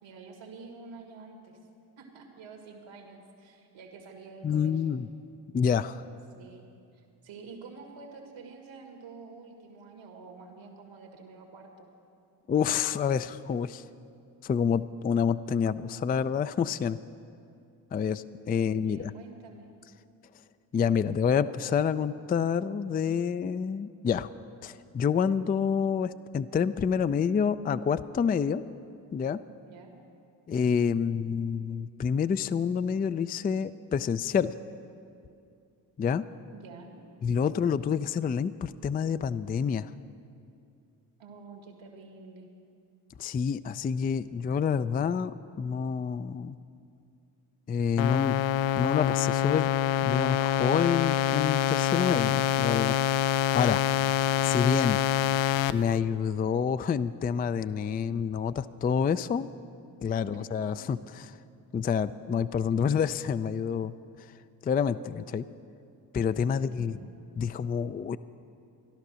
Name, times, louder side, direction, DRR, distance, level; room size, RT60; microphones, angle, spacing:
voice 1, 0.0-1.6 2.0-4.9 6.3-6.7 6.9-11.9 18.6-19.7 29.7-30.0 36.5-37.0 41.2-42.5 60.1-60.5 60.8-60.9 66.5-67.1, right 4 dB, 75° right, 3 dB, 1.9 m, -48 dB
voice 2, 4.4-5.1 5.5-6.0 12.5-13.8 14.4-17.0 17.9-19.1 20.7-24.3 24.6-28.6 29.1-29.4 30.5-34.5 36.0-36.2 37.2-39.9 43.2-45.3 45.6-46.6 47.7-48.4 48.8-49.7 50.0-53.0 53.5-53.8 54.4-55.0 55.7-59.5 60.0-61.3 61.7-63.9 64.6-65.5 66.1-67.0 67.4-68.2, left 7 dB, 20° left, 14 dB, 0.3 m, -28 dB
sound 1, 48.0-55.7, left 11 dB, 75° left, 0.5 m, -26 dB
13.5 x 12.0 x 6.3 m, 2.5 s
supercardioid pair, 50°, 46 cm